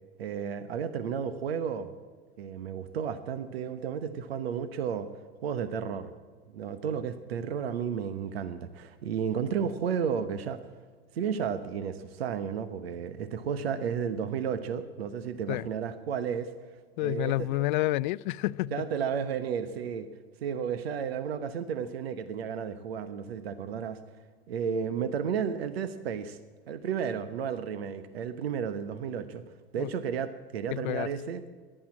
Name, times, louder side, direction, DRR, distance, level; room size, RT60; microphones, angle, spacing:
voice 1, 0.2-1.9 2.4-5.1 5.4-6.1 6.5-10.6 11.1-16.5 17.0-17.6 18.7-20.1 20.4-24.0 24.5-26.4 26.7-29.4 29.7-31.4, right 7 dB, 75° right, 1.1 m, -32 dB
voice 2, 17.0-18.7 29.8-29.9 30.7-31.1, left 18 dB, 50° left, 0.5 m, -29 dB
14.5 x 11.5 x 8.6 m
hypercardioid pair, 115°, 31 cm